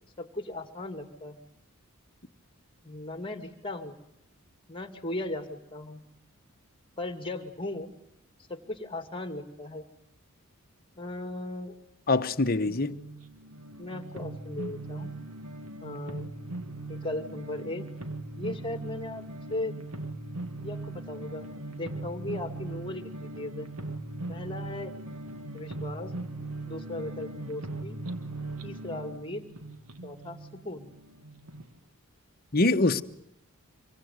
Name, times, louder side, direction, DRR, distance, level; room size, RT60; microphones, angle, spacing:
voice 1, 0.2-1.4 2.8-4.0 4.7-6.0 7.0-7.9 8.5-9.8 11.0-11.8 13.8-15.2 15.8-16.3 16.9-17.9 18.4-19.8 20.6-21.5 21.7-23.7 24.3-25.0 25.5-26.1 26.7-28.0 28.6-29.4 30.0-30.9, left 2 dB, 25° left, 2.5 m, -37 dB
voice 2, 12.1-12.9 32.5-33.0, left 2 dB, 45° left, 1.1 m, -24 dB
sound 1, 12.6-31.7, right 2 dB, 85° right, 1.9 m, -39 dB
26.0 x 23.5 x 9.5 m
head